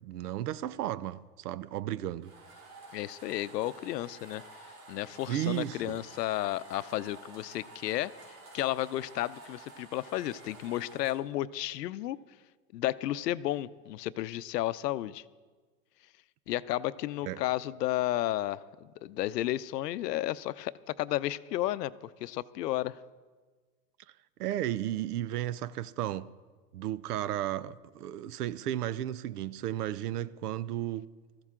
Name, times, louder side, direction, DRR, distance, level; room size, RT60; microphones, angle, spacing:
voice 1, 0.0-2.3 5.3-6.0 17.3-17.4 24.4-26.3 26.7-31.1, right 12 dB, 75° right, 0.7 m, -34 dB
Coffee Bean Grinder, 2.2-11.2, right 2 dB, 55° right, 5.7 m, -51 dB
voice 2, 2.9-4.4 4.9-8.1 8.5-12.2 12.7-15.2 16.5-23.0, left 14 dB, 90° left, 0.7 m, -32 dB
20.0 x 14.5 x 3.7 m
supercardioid pair, 175°, 47 cm